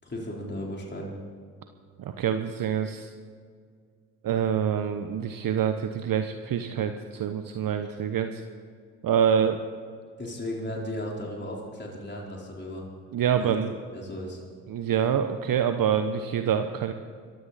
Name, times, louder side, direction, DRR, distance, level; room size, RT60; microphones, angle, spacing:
voice 1, 0.0-1.2 10.2-12.9 13.3-13.6 13.9-14.4, left 1 dB, 25° left, -2 dB, 4.2 m, -35 dB
voice 2, 2.0-3.1 4.2-8.4 9.0-9.6 13.1-13.7 14.7-16.9, right 8 dB, 45° right, 8 dB, 1.1 m, -26 dB
22.0 x 14.5 x 4.2 m, 2.1 s
hypercardioid pair, 50°, 45 cm